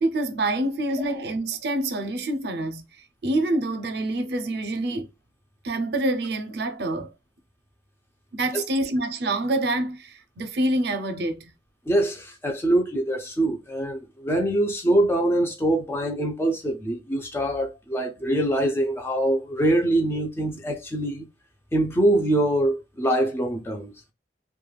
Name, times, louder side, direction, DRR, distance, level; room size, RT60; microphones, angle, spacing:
voice 1, 0.0-2.8 3.2-5.1 5.6-7.1 8.3-11.5, right 1 dB, 60° right, 0.5 m, -26 dB
voice 2, 11.9-21.3 21.7-23.9, right 1 dB, 15° left, 0.4 m, -24 dB
3.2 x 2.2 x 2.2 m
head